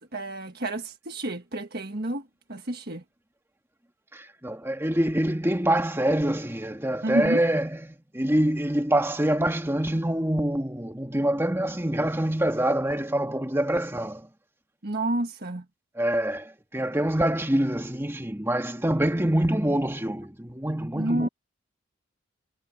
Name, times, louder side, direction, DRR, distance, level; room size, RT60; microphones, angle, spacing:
voice 1, 0.1-2.2 2.5-3.0 7.0-7.4 14.8-15.6 21.0-21.3, right 1 dB, 45° right, 1.6 m, -29 dB
voice 2, 4.1-14.3 15.9-21.3, right 1 dB, 10° right, 1.7 m, -25 dB
head